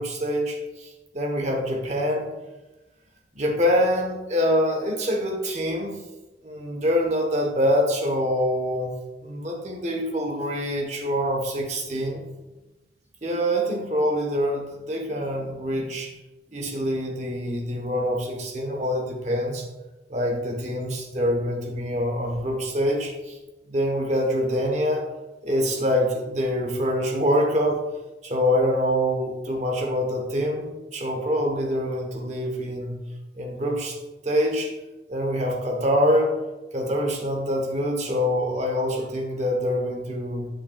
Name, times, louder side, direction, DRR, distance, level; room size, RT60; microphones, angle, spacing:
voice 1, 0.0-2.3 3.3-6.0 6.4-8.9 9.2-12.2 13.2-16.2 16.5-19.7 20.1-23.4 23.7-25.1 25.4-27.8 28.2-33.0 33.3-34.0 34.2-34.7 35.1-36.3 36.7-40.5, equal, 35° right, 1 dB, 1.1 m, -25 dB
8.7 x 5.7 x 2.4 m, 1.1 s
head